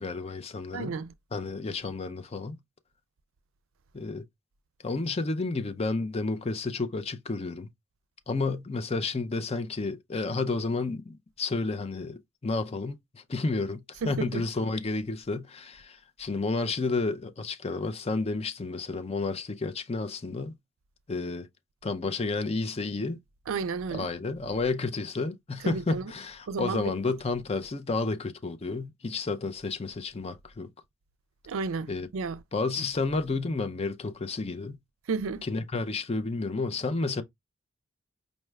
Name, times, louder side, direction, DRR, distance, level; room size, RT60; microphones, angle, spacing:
voice 1, 0.0-1.0 1.3-2.6 3.9-4.2 4.8-7.7 8.3-20.5 21.1-21.5 21.8-23.2 23.9-30.7 31.9-32.1 32.5-34.8 35.4-37.2, left 3 dB, 30° left, 0.5 m, -31 dB
voice 2, 0.7-1.1 14.0-14.4 23.5-24.1 25.6-26.1 26.5-26.9 31.5-32.4 35.1-35.4, right 4 dB, 80° right, 0.4 m, -32 dB
5.3 x 2.3 x 3.2 m
head